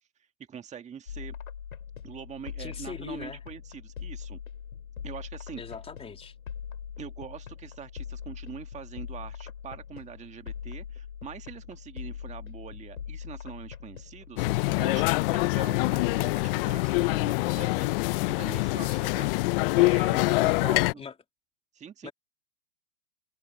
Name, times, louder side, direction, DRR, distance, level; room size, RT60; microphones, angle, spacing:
voice 1, 0.5-1.3 2.0-4.4 5.0-5.6 7.0-19.3 19.8-21.0 21.7-22.1, right 8 dB, 15° right, 1.8 m, -44 dB
sound 1, 1.1-18.7, left 8 dB, 80° left, 4.5 m, -42 dB
voice 2, 2.6-3.4 5.5-6.3 20.3-21.1 22.0-22.1, left 5 dB, 15° left, 3.4 m, -40 dB
sound 2, 14.4-20.9, left 24 dB, 40° left, 0.9 m, -25 dB
hypercardioid pair, 115°, 41 cm